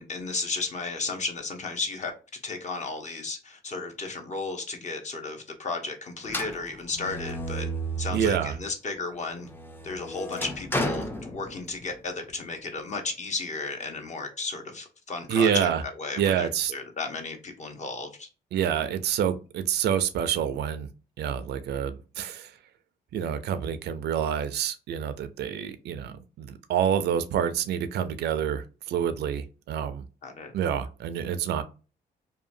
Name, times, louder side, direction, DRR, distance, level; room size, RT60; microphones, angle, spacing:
voice 1, 0.0-2.1 2.4-7.7 8.0-9.5 9.8-18.3 30.2-30.5, left 3 dB, 45° left, 0.8 m, -34 dB
sound 1, 6.3-8.7 9.1-12.0, right 1 dB, 10° left, 0.5 m, -33 dB
voice 2, 8.1-8.5 15.3-15.8 16.2-16.7 18.5-20.9 21.2-22.5 23.1-30.0 30.5-31.6, right 8 dB, 80° right, 0.4 m, -27 dB
2.8 x 2.2 x 2.5 m
cardioid pair, 80°, 17 cm